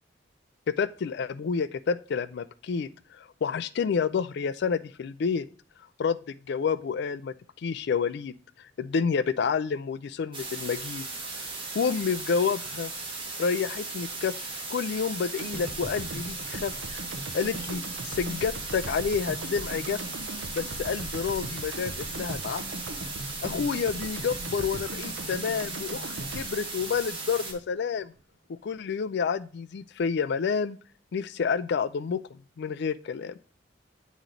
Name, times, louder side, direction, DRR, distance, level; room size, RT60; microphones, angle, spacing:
voice 1, 0.7-2.9 3.2-5.5 6.0-7.3 7.6-8.3 8.8-11.1 11.7-12.9 13.4-17.0 17.3-20.0 20.5-22.6 23.4-28.1 28.5-30.8 31.1-32.2 32.6-33.3, left 6 dB, 65° left, 15 dB, 0.4 m, -29 dB
sound 1, 10.3-27.5, right 3 dB, 30° right, 1.3 m, -37 dB
sound 2, 15.4-27.6 28.0-28.1, right 2 dB, 75° right, 0.6 m, -40 dB
8.2 x 3.1 x 3.7 m, 0.41 s
head